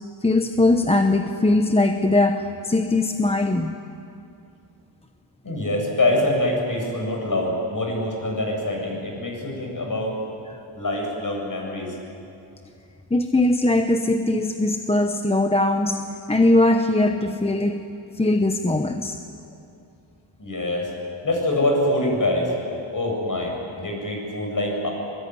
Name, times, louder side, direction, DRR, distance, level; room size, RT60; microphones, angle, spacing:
voice 1, 0.2-3.7 13.1-17.9 18.2-19.1, left 2 dB, 10° left, 6 dB, 0.9 m, -20 dB
voice 2, 5.4-10.1 10.7-11.9 20.4-20.9 21.2-22.5 22.9-24.9, left 1 dB, 40° left, 0 dB, 7.8 m, -24 dB
24.0 x 22.0 x 9.6 m, 2.7 s
wide cardioid pair, 120°, 48 cm